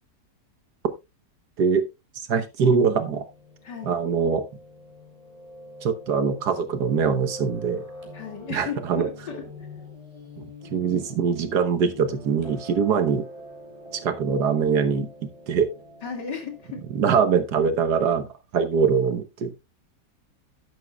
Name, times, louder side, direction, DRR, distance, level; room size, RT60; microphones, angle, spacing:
voice 1, 2.2-3.2 3.8-4.4 5.8-7.8 8.5-9.1 10.4-10.5 10.7-13.2 13.9-15.7 17.0-18.3 18.5-19.5, right 6 dB, 70° right, 9 dB, 1.6 m, -23 dB
Piano, 3.0-17.5, left 1 dB, 20° right, 3.2 m, -44 dB
voice 2, 3.6-3.9 8.1-9.5 16.0-17.2, left 6 dB, 80° left, 4 dB, 3.0 m, -35 dB
11.5 x 11.0 x 2.3 m, 0.24 s
omnidirectional pair, 1.8 m